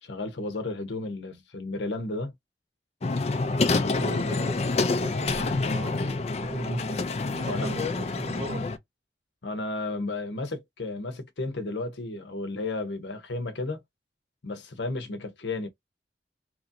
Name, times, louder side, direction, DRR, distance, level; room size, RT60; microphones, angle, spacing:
voice 1, 0.0-2.3 3.7-4.5 7.5-7.8 9.4-13.8 14.4-15.7, left 2 dB, 80° left, 0.8 m, -33 dB
sound 1, 3.0-8.8, left 3 dB, 35° left, 0.4 m, -27 dB
voice 2, 4.0-6.2 6.4-7.0 7.3-8.6, right 2 dB, 50° right, 0.9 m, -38 dB
3.0 x 2.6 x 2.6 m
head